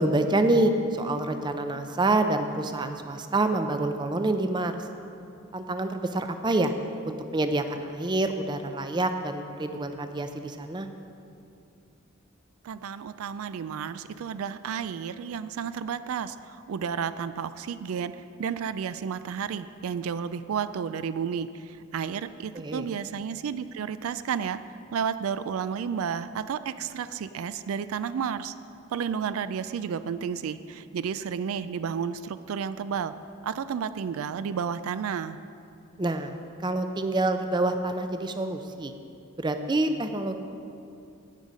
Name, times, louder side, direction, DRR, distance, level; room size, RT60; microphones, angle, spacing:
voice 1, 0.0-4.7 5.5-6.7 7.0-10.9 22.5-22.9 36.0-38.9 39.4-40.4, right 2 dB, 20° right, 8 dB, 0.4 m, -27 dB
voice 2, 12.6-18.1 18.4-24.6 24.9-28.5 28.9-33.1 33.4-35.4, right 7 dB, 80° right, 13 dB, 0.3 m, -32 dB
16.5 x 5.5 x 5.1 m, 2.6 s
head